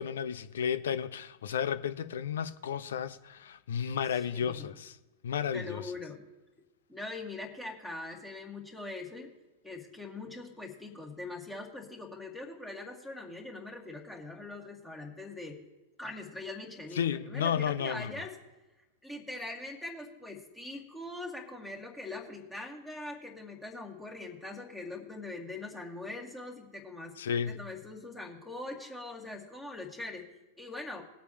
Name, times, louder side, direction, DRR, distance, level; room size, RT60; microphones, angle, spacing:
voice 1, 0.0-5.0 5.2-5.9 17.0-18.2 27.2-27.6, left 8 dB, 60° left, 0.7 m, -33 dB
voice 2, 4.1-4.7 5.5-6.2 6.9-9.3 9.6-15.6 16.0-18.4 19.0-27.1 27.5-30.3 30.6-31.0, left 2 dB, 10° left, 2.0 m, -42 dB
19.5 x 8.2 x 3.1 m
figure-of-eight pair, 90°, 0 cm